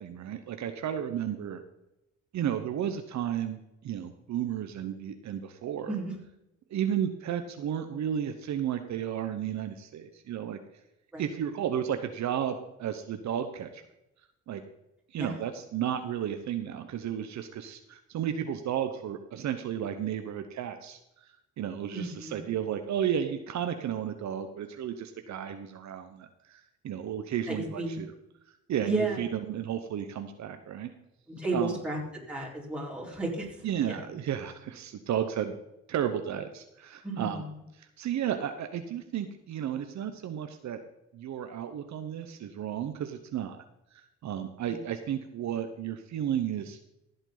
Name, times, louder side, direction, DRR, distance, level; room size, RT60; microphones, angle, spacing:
voice 1, 0.0-1.6 2.3-5.9 6.7-10.6 11.2-13.8 14.5-14.6 15.1-21.0 21.6-28.1 28.7-30.9 31.5-31.8 33.6-35.6 35.9-37.4 37.8-40.8 41.1-43.6 43.9-46.8, right 9 dB, 65° right, 7 dB, 1.0 m, -33 dB
voice 2, 21.9-22.5 27.5-28.0 28.8-29.2 31.3-33.9 37.0-37.6, right 2 dB, 5° right, -4 dB, 4.4 m, -33 dB
15.5 x 7.9 x 4.0 m, 0.88 s
cardioid pair, 90°, 30 cm